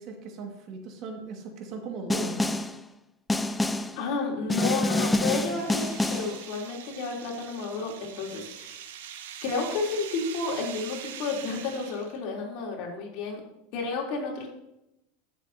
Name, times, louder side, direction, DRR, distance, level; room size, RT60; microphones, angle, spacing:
voice 1, 0.0-2.6, right 4 dB, 50° right, 2 dB, 2.0 m, -38 dB
Snare drum, 2.1-2.8 3.3-4.0 4.5-6.4, left 2 dB, 10° left, 0.6 m, -27 dB
voice 2, 4.0-8.9 9.4-13.4 13.7-14.5, left 4 dB, 60° left, -2 dB, 3.5 m, -31 dB
sound 1, 4.5-12.2, right 9 dB, 80° right, 1.1 m, -43 dB
14.5 x 7.6 x 2.9 m, 0.85 s
hypercardioid pair, 110°, 0 cm